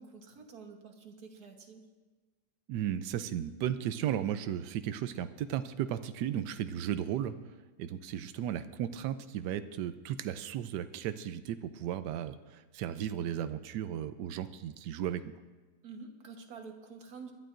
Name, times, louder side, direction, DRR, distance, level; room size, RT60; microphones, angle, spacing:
voice 1, 0.0-1.8 15.8-17.3, right 5 dB, 65° right, 4 dB, 1.8 m, -48 dB
voice 2, 2.7-7.4 7.8-15.2, right 10 dB, 85° right, 11 dB, 1.2 m, -35 dB
24.5 x 12.0 x 2.6 m, 1.3 s
omnidirectional pair, 1.8 m